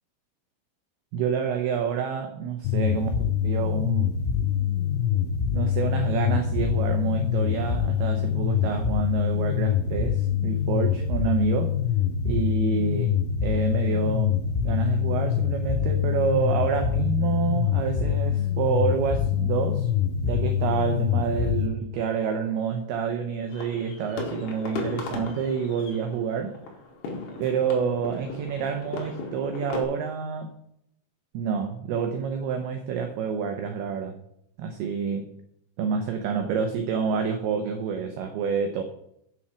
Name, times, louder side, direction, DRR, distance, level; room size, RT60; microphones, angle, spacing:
voice 1, 1.1-3.1 3.4-4.1 5.5-11.8 12.3-19.9 20.2-26.6 27.4-30.5 31.3-34.2 34.6-35.3 35.8-38.8, right 6 dB, 90° right, 5 dB, 2.2 m, -28 dB
sound 1, 2.7-21.7, left 9 dB, 90° left, 3.3 m, -25 dB
sound 2, 23.5-29.8, left 3 dB, 65° left, 3.6 m, -36 dB
7.9 x 7.2 x 6.1 m, 0.74 s
omnidirectional pair, 5.7 m